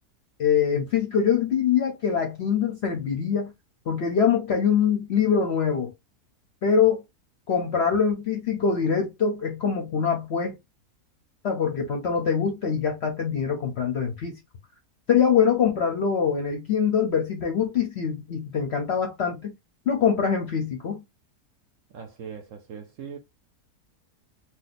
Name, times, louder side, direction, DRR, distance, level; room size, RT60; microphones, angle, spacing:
voice 1, 0.4-3.5 3.9-5.9 6.6-7.0 7.5-10.6 11.4-14.4 15.1-19.6 19.9-21.0, left 7 dB, 60° left, 0.7 m, -24 dB
voice 2, 21.9-23.2, right 7 dB, 65° right, 0.8 m, -40 dB
2.7 x 2.1 x 3.9 m
omnidirectional pair, 1.7 m